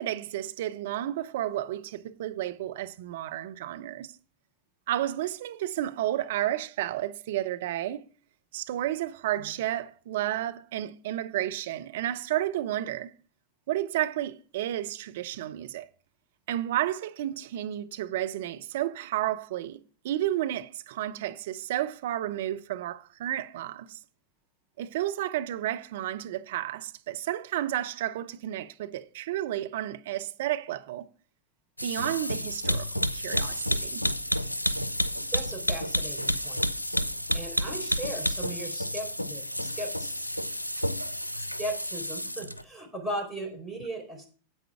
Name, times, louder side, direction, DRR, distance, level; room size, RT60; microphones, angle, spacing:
voice 1, 0.0-4.1 4.9-8.0 8.5-13.1 13.7-15.9 16.5-24.0 24.8-31.1 31.8-34.1, right 13 dB, 55° right, 0.7 m, -32 dB
sound 1, 31.8-42.6, equal, 85° left, 0.5 m, -30 dB
voice 2, 35.3-36.7 37.3-40.2 41.6-44.3, right 1 dB, 5° right, 4.0 m, -37 dB
9.7 x 8.1 x 4.9 m
figure-of-eight pair, 90°, 0 cm